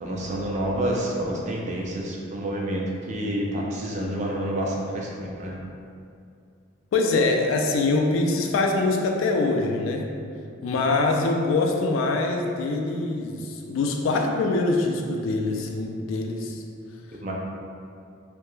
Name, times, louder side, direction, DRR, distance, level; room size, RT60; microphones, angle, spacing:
voice 1, 0.0-2.8 3.1-5.6 17.2-17.3, right 1 dB, 35° right, -2 dB, 0.3 m, -28 dB
voice 2, 6.9-10.1 10.6-16.6, left 3 dB, 80° left, 3 dB, 0.3 m, -24 dB
2.2 x 2.1 x 3.0 m, 2.4 s
head